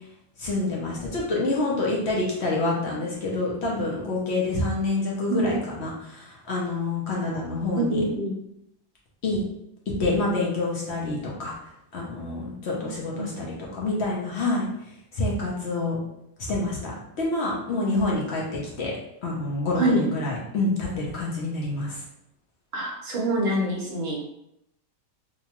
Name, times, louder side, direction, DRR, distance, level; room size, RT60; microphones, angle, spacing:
voice 1, 0.4-8.0 9.2-9.4 10.0-11.5 11.9-13.5 13.7-14.6 15.2-16.0 16.5-16.9 17.2-18.4 18.8-18.9 19.2-22.0, left 2 dB, 60° left, -4 dB, 0.8 m, -27 dB
voice 2, 7.7-8.3 12.7-13.3 19.7-20.1 22.7-24.2, right 1 dB, 55° right, -2 dB, 0.9 m, -25 dB
2.8 x 2.2 x 2.9 m, 0.81 s
omnidirectional pair, 1.4 m